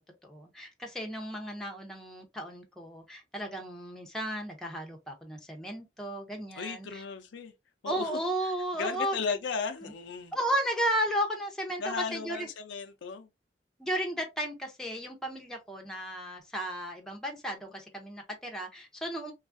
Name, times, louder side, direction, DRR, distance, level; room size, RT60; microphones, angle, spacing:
voice 1, 0.0-7.0 7.9-9.2 10.3-11.8 12.1-12.5 13.8-19.3, equal, 5° left, 0.5 m, -34 dB
voice 2, 6.6-7.5 7.8-10.4 11.8-13.3, left 5 dB, 85° left, 0.4 m, -36 dB
3.1 x 2.3 x 2.4 m
head